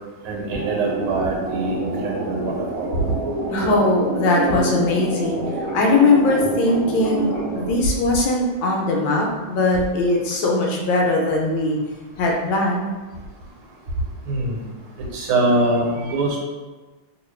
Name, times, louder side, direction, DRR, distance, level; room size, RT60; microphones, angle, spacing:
voice 1, 0.2-2.9 14.3-14.6 15.1-16.4, right 2 dB, 85° right, -1 dB, 1.6 m, -23 dB
sound 1, 0.5-7.7, right 2 dB, 60° right, 0.9 m, -27 dB
voice 2, 3.5-11.8 12.2-12.9, left 2 dB, 75° left, -1 dB, 1.3 m, -20 dB
3.0 x 2.8 x 3.1 m, 1.2 s
omnidirectional pair, 2.3 m